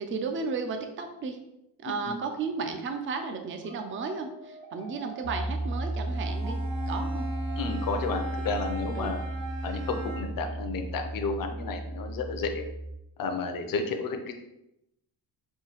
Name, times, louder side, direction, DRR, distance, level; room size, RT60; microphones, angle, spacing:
voice 1, 0.0-1.4 1.8-6.6 6.9-7.3 8.9-9.1, right 4 dB, 30° right, 6 dB, 0.4 m, -34 dB
voice 2, 1.9-2.2 7.6-9.2 9.6-12.7 13.2-14.3, left 4 dB, 50° left, 5 dB, 0.6 m, -32 dB
sound 1, 3.6-9.7, right 2 dB, 55° right, 1.2 m, -45 dB
Piano, 5.2-12.9, right 1 dB, 80° left, 0.9 m, -34 dB
Bowed string instrument, 6.1-10.5, equal, 80° right, 1.1 m, -40 dB
5.6 x 2.7 x 2.9 m, 0.85 s
cardioid pair, 160°, 44 cm